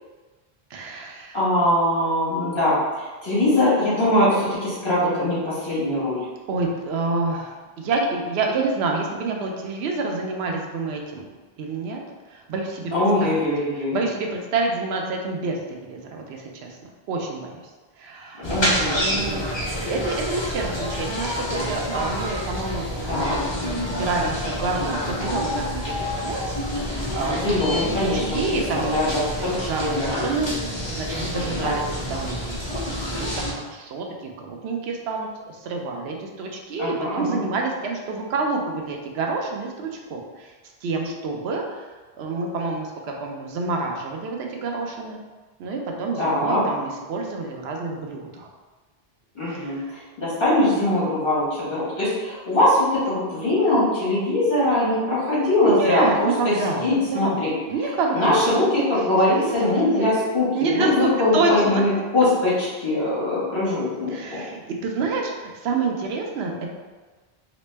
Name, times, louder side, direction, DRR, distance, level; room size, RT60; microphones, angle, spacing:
voice 1, 0.7-1.4 6.5-11.3 11.6-12.0 12.3-12.9 13.2-13.3 13.9-17.6 18.0-18.5 18.9-29.3 29.7-40.5 40.8-41.9 42.2-42.9 43.2-45.2 45.6-48.5 49.5-49.8 55.6-57.4 57.7-58.3 59.3-60.1 60.5-61.8 64.1-66.7, right 3 dB, 90° right, 1 dB, 0.8 m, -28 dB
voice 2, 1.3-6.2 12.9-14.1 18.4-19.4 23.1-23.4 27.3-29.5 29.8-30.2 31.6-31.8 36.8-37.4 46.2-46.6 49.3-57.5 58.1-64.4, left 1 dB, 60° left, -9 dB, 1.7 m, -22 dB
sound 1, 18.4-33.5, left 1 dB, 35° left, 0.5 m, -28 dB
4.0 x 2.0 x 3.2 m, 1.3 s
omnidirectional pair, 1.0 m